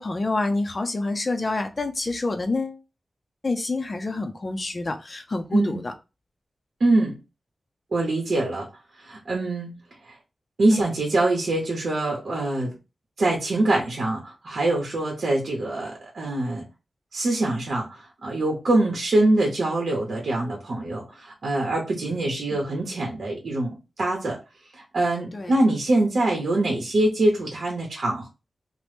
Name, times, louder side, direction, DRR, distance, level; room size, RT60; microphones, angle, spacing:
voice 1, 0.0-2.8 3.4-5.9 10.7-10.8 22.5-22.6 25.3-25.5, left 2 dB, 35° left, 0.4 m, -27 dB
voice 2, 5.5-5.8 6.8-7.1 7.9-8.7 9.0-9.8 10.1-10.2 10.6-12.7 13.2-16.6 17.1-24.4 24.7-28.3, right 2 dB, 70° right, 0.8 m, -24 dB
2.9 x 2.0 x 3.2 m
wide cardioid pair, 135°, 0 cm